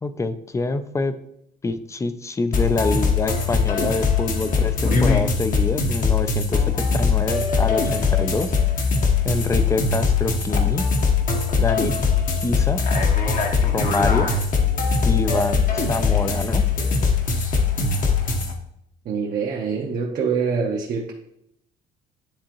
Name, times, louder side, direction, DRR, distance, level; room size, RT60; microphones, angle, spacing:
voice 1, 0.0-1.1 1.6-8.5 9.2-10.9 11.6-11.9 12.4-12.8 13.7-14.4 15.1-16.6, left 3 dB, 15° left, 11 dB, 0.5 m, -26 dB
sound 1, 2.5-18.5, left 5 dB, 50° left, 1.1 m, -21 dB
voice 2, 19.0-21.1, right 5 dB, 55° right, -2 dB, 1.0 m, -25 dB
10.0 x 3.6 x 3.0 m, 0.77 s
cardioid pair, 110°, 17 cm